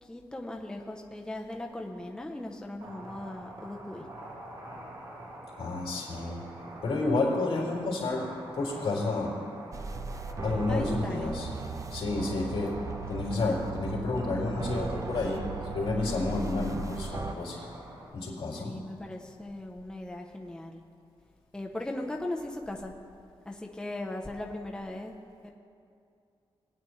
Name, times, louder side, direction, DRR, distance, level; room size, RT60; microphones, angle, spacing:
voice 1, 0.0-4.1 10.7-11.3 18.5-20.8 21.5-22.9 23.4-25.2 25.4-25.5, left 1 dB, 10° left, 1 dB, 0.7 m, -38 dB
sound 1, 2.8-18.1, right 1 dB, 60° right, 2.1 m, -45 dB
voice 2, 5.6-6.4 6.8-8.3 8.5-9.3 10.4-11.5 11.9-12.8 13.1-15.4 15.7-17.6 18.1-18.7, left 3 dB, 85° left, -4 dB, 3.2 m, -30 dB
sound 2, 9.7-17.3, right 4 dB, 35° right, 0.5 m, -37 dB
20.0 x 9.2 x 3.2 m, 2.4 s
wide cardioid pair, 130°, 10 cm